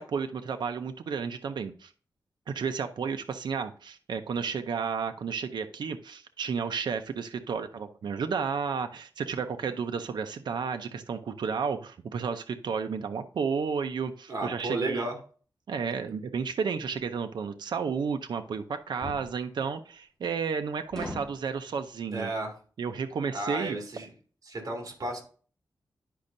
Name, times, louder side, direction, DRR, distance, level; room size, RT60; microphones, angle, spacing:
voice 1, 0.0-1.9 2.5-15.1 15.7-22.3 22.8-23.8, right 6 dB, 75° right, 7 dB, 0.6 m, -32 dB
voice 2, 14.3-15.2 22.1-22.5 23.3-24.1 24.5-25.2, right 2 dB, 55° right, 1 dB, 2.8 m, -33 dB
sound 1, 17.0-17.1 19.0-19.3 20.9-21.4, left 1 dB, 5° left, 2.5 m, -38 dB
10.0 x 5.3 x 2.6 m, 0.41 s
wide cardioid pair, 90°, 8 cm